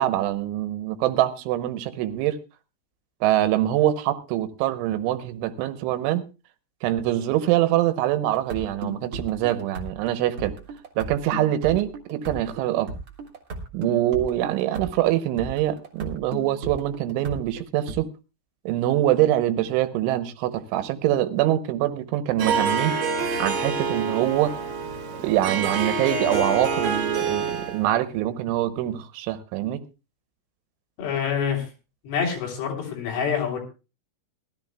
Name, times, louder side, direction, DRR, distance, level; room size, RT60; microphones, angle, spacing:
voice 1, 0.0-2.4 3.2-6.2 6.8-10.5 11.0-12.9 13.7-18.1 18.7-23.0 23.4-24.5 25.2-29.8, right 13 dB, 80° right, 11 dB, 3.2 m, -24 dB
sound 1, 8.3-17.9, right 2 dB, 65° right, 1.4 m, -37 dB
Harp, 22.4-27.9, right 5 dB, 45° right, 3.0 m, -27 dB
voice 2, 31.0-31.7 32.0-33.6, left 7 dB, 75° left, 1 dB, 5.7 m, -26 dB
20.0 x 13.5 x 2.2 m, 0.31 s
omnidirectional pair, 5.6 m